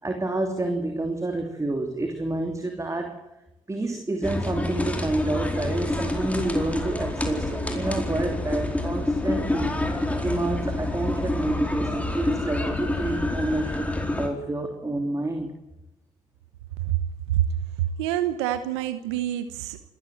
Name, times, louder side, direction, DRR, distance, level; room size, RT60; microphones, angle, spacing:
voice 1, 0.0-3.2 3.7-9.8 10.2-13.9 14.2-15.5, right 2 dB, 20° right, 4 dB, 3.1 m, -29 dB
Piccadilly gardens, 4.2-14.3, left 1 dB, 10° left, 4.5 m, -27 dB
voice 2, 16.8-17.5 17.8-19.9, right 12 dB, 85° right, 12 dB, 0.9 m, -27 dB
25.0 x 14.0 x 7.8 m, 0.92 s
hypercardioid pair, 45°, 14 cm